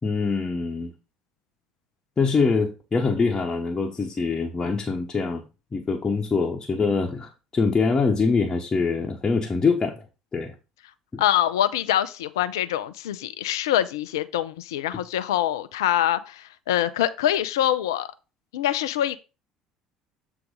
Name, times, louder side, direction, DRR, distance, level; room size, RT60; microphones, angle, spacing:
voice 1, 0.0-0.9 2.2-5.4 5.7-10.0 10.3-10.5 11.1-11.2, left 4 dB, 25° left, 1.1 m, -24 dB
voice 2, 11.2-18.1 18.5-19.2, left 12 dB, 70° left, 0.4 m, -24 dB
7.9 x 3.5 x 5.1 m
figure-of-eight pair, 60°, 2 cm